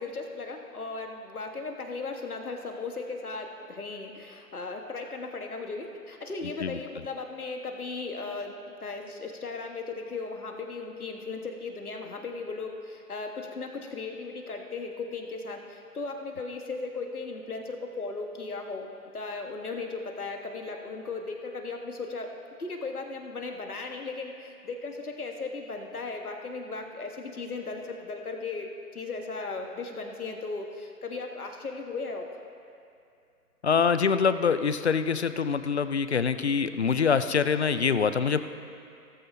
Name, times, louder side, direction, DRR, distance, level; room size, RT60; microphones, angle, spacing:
voice 1, 0.0-18.9 19.1-22.3 22.6-32.4, left 3 dB, 65° left, 3 dB, 1.6 m, -37 dB
voice 2, 33.6-38.4, left 6 dB, 45° left, 12 dB, 0.5 m, -25 dB
17.0 x 14.0 x 2.8 m, 2.5 s
figure-of-eight pair, 140°, 47 cm